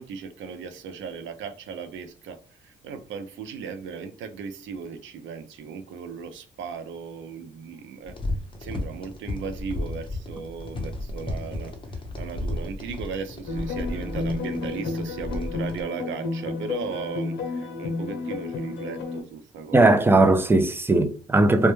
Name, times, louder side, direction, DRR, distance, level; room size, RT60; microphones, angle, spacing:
voice 1, 0.0-8.2 8.6-20.0, right 6 dB, 75° right, 0.5 m, -37 dB
sound 1, 8.0-15.8, left 1 dB, 25° left, 0.6 m, -34 dB
sound 2, 13.5-19.2, left 3 dB, 70° left, 0.8 m, -31 dB
voice 2, 19.7-21.7, right 2 dB, 10° right, 0.3 m, -18 dB
2.1 x 2.1 x 3.0 m
cardioid pair, 90°, 20 cm